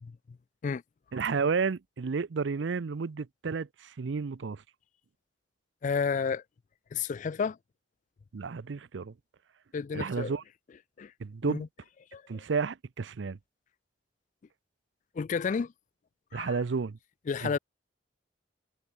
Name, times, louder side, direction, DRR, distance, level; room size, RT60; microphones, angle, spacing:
voice 1, 1.1-4.6 8.3-9.1 9.9-10.4 11.2-11.6 12.3-13.4 16.3-17.0 17.4-17.6, right 5 dB, 75° right, 0.5 m, -31 dB
voice 2, 5.8-6.4 6.9-7.6 9.7-10.3 11.0-11.1 11.4-11.7 12.1-12.4 15.2-15.7 16.3-16.5 17.3-17.6, left 5 dB, 40° left, 0.3 m, -31 dB
head